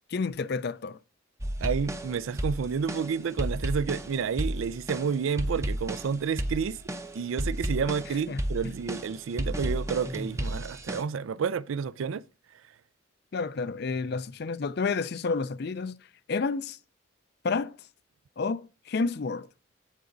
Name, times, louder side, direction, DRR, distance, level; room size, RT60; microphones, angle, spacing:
voice 1, 0.1-1.0 8.3-8.7 13.3-16.0 16.3-16.8 17.4-17.8 18.4-19.5, left 4 dB, 50° left, 0.4 m, -30 dB
sound 1, 1.4-11.0, right 1 dB, 15° right, 0.6 m, -33 dB
voice 2, 1.6-6.8 7.1-12.2 12.5-12.6, right 6 dB, 75° right, 0.4 m, -30 dB
14.5 x 4.9 x 2.6 m
head